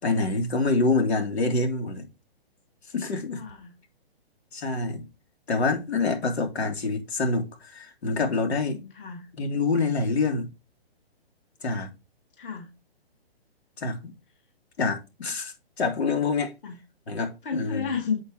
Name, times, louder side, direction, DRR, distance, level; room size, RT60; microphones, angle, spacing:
voice 1, 0.0-2.1 2.9-3.4 4.5-5.0 5.5-8.8 9.4-10.5 11.6-11.9 13.8-14.1 14.8-16.5 17.1-17.9, left 3 dB, 90° left, 3.1 m, -26 dB
voice 2, 3.3-3.7 8.7-9.3 12.4-12.7 16.6-16.8 17.4-18.2, left 6 dB, 55° left, 1.9 m, -32 dB
8.2 x 4.8 x 4.7 m
hypercardioid pair, 175°, 31 cm